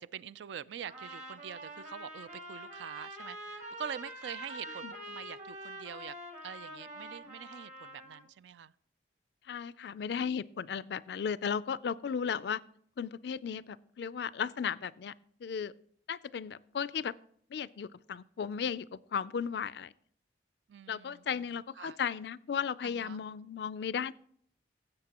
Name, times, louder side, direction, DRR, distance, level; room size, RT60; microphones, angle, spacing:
voice 1, 0.0-6.2 6.4-8.7 20.7-21.5 21.8-22.0 22.8-23.2, right 8 dB, 75° right, 18 dB, 0.3 m, -45 dB
Trumpet, 0.8-8.2, right 1 dB, 40° right, 1.7 m, -45 dB
voice 2, 9.5-12.6 13.0-15.1 15.4-15.7 16.1-17.1 17.5-19.9 20.9-24.1, left 7 dB, 65° left, 19 dB, 0.3 m, -35 dB
17.0 x 7.7 x 2.9 m, 0.63 s
head